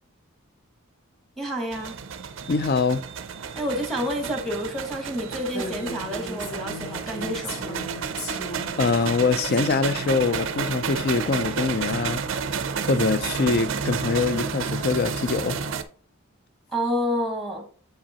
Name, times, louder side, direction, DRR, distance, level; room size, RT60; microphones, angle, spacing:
voice 1, 1.4-1.9 3.5-7.9 16.7-17.6, equal, ahead, 0.9 m, -29 dB
sound 1, 1.7-15.8, right 6 dB, 60° right, 0.4 m, -31 dB
voice 2, 2.5-3.0 8.8-12.2 12.8-15.6, left 4 dB, 45° left, 0.4 m, -24 dB
Female speech woman speaking, 5.5-9.6, left 1 dB, 70° left, 1.7 m, -37 dB
7.4 x 5.0 x 2.8 m
head